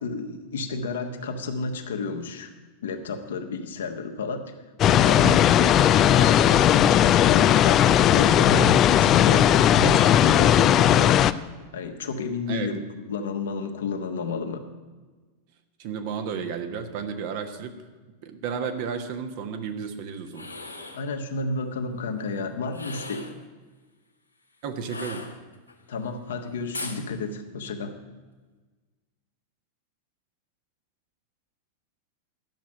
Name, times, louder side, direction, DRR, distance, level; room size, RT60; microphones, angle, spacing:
voice 1, 0.0-2.5 2.8-4.5 4.9-11.3 11.7-12.8 13.1-14.7 20.9-23.3 25.9-28.0, left 3 dB, 65° left, 5 dB, 1.3 m, -31 dB
sound 1, 4.8-11.3, left 11 dB, 30° left, 0.4 m, -17 dB
voice 2, 15.8-17.8 18.2-20.5 24.6-25.2, right 6 dB, 45° right, 6 dB, 1.3 m, -32 dB
sound 2, 20.2-21.1 22.7-23.4 24.8-25.7 26.7-27.0, left 2 dB, 85° left, 1.3 m, -38 dB
11.0 x 7.2 x 9.6 m, 1.3 s
figure-of-eight pair, 90°, 0 cm